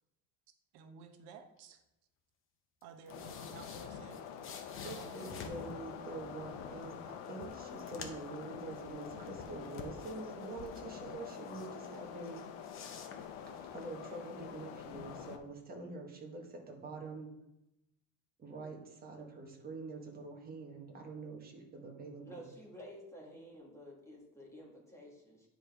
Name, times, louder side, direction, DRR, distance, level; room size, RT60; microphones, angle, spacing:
voice 1, 0.7-1.8 2.8-4.2 4.8-5.5, right 6 dB, 90° right, 6 dB, 1.0 m, -54 dB
sound 1, 2.8-5.7 6.8-6.9 7.2-8.4 8.7-10.9 11.3-12.0 12.2-13.8, left 5 dB, 30° left, 0.7 m, -50 dB
sound 2, 3.1-15.4, left 8 dB, 75° left, 0.9 m, -46 dB
voice 2, 4.7-6.9 7.3-12.4 13.7-17.3 18.4-22.4, right 3 dB, 20° right, 0 dB, 1.3 m, -46 dB
voice 3, 22.2-25.5, equal, 5° left, -3 dB, 1.4 m, -52 dB
9.8 x 5.0 x 3.4 m, 0.89 s
cardioid pair, 165°, 43 cm